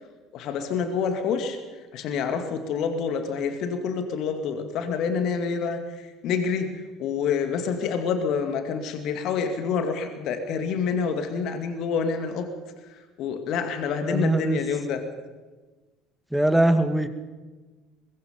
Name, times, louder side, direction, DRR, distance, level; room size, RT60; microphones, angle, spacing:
voice 1, 0.3-1.6 1.9-12.5 13.2-15.0, left 6 dB, 55° left, 7 dB, 2.3 m, -27 dB
voice 2, 14.0-14.6 16.3-17.1, right 1 dB, 5° right, 9 dB, 2.0 m, -21 dB
23.0 x 21.5 x 5.3 m, 1.3 s
figure-of-eight pair, 60°, 0 cm